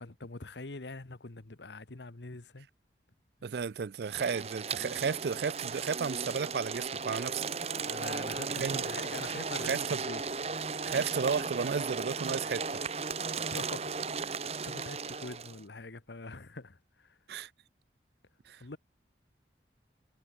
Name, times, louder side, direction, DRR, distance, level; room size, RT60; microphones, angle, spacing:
voice 1, 0.0-2.7 7.9-10.2 13.3-17.2 18.6-18.8, left 3 dB, 80° left, 1.2 m, -44 dB
voice 2, 3.4-7.5 8.5-8.8 9.6-10.0 10.8-12.8 17.3-17.5 18.5-18.6, right 6 dB, 65° right, 0.4 m, -33 dB
sound 1, 4.0-15.6, right 5 dB, 35° right, 1.1 m, -36 dB
head